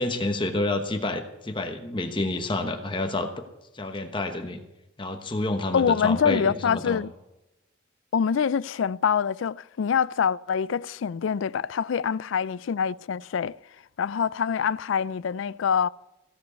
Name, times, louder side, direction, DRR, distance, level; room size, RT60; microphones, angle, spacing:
voice 1, 0.0-3.4 3.7-4.6 5.0-7.0, left 2 dB, 25° left, 1.0 m, -29 dB
voice 2, 5.7-7.1 8.1-13.6 14.0-15.9, left 7 dB, 80° left, 0.4 m, -25 dB
16.0 x 7.8 x 8.2 m
head